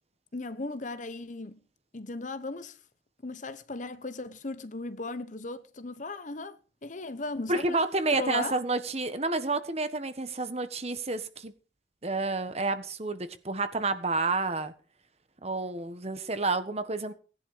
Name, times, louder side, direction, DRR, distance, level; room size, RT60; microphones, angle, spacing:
voice 1, 0.3-1.6 1.9-2.8 3.2-7.8 8.1-8.6, left 3 dB, 40° left, 0.9 m, -37 dB
voice 2, 7.5-11.5 12.0-14.7 15.4-17.1, right 3 dB, 35° right, 1.4 m, -30 dB
18.0 x 11.0 x 5.1 m
head